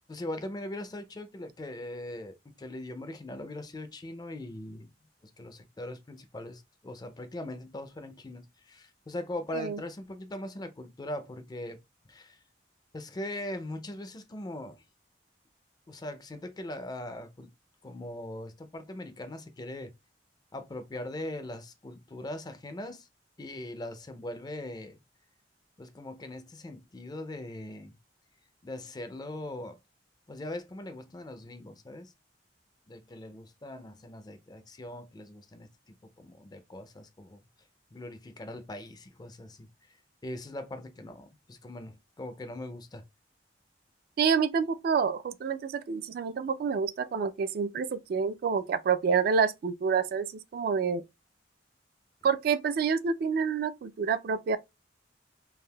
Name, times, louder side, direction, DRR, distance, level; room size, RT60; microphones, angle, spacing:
voice 1, 0.1-4.9 5.4-11.8 12.1-12.4 12.9-14.8 15.9-17.5 17.8-19.9 20.5-23.1 23.4-25.0 25.8-28.0 28.6-29.8 30.3-32.1 32.9-37.4 37.9-40.0 40.2-43.0, left 1 dB, 25° left, 0.4 m, -40 dB
voice 2, 44.2-51.0 52.2-54.6, right 6 dB, 55° right, 0.3 m, -28 dB
3.4 x 2.5 x 2.2 m
head